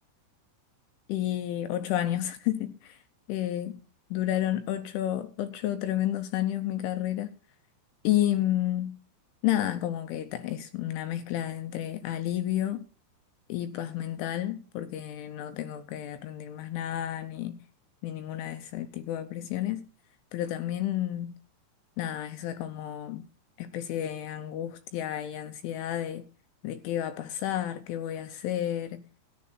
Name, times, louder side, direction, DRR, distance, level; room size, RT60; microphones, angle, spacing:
voice 1, 1.1-3.0 3.3-3.8 4.1-7.4 8.0-9.0 9.4-12.8 13.5-17.6 18.0-19.9 20.3-21.4 22.0-23.3 23.6-26.3 26.6-29.0, left 12 dB, 80° left, 3.1 m, -31 dB
14.0 x 11.0 x 4.3 m
omnidirectional pair, 5.9 m